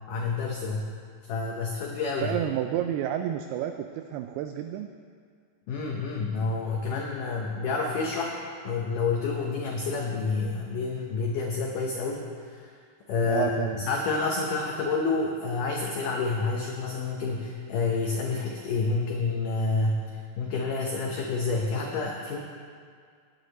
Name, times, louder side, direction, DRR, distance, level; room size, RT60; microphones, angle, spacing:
voice 1, 0.1-0.9 1.3-2.4 5.7-8.4 8.6-12.7 13.1-22.4, left 4 dB, 85° left, 0 dB, 1.8 m, -29 dB
voice 2, 2.2-4.9 13.3-13.9, right 10 dB, 85° right, 6 dB, 2.3 m, -30 dB
17.5 x 9.7 x 4.1 m, 2.1 s
omnidirectional pair, 5.1 m